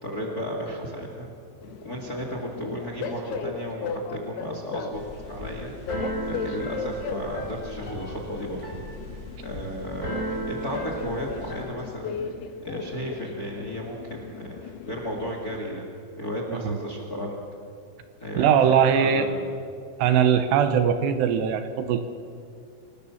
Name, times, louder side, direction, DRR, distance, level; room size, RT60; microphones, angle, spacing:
voice 1, 0.0-1.3 1.8-5.0 5.3-5.7 6.2-8.6 9.4-12.1 12.6-15.9 16.2-17.4 18.2-19.5, equal, 30° left, 1 dB, 1.8 m, -34 dB
Train, 1.6-15.6, left 4 dB, 70° left, 3.2 m, -37 dB
Keyboard (musical), 4.9-11.6, right 1 dB, 10° right, 7.4 m, -35 dB
voice 2, 18.4-19.3 20.0-22.1, right 8 dB, 75° right, 9 dB, 3.0 m, -21 dB
27.0 x 18.0 x 7.2 m, 2.3 s
omnidirectional pair, 5.2 m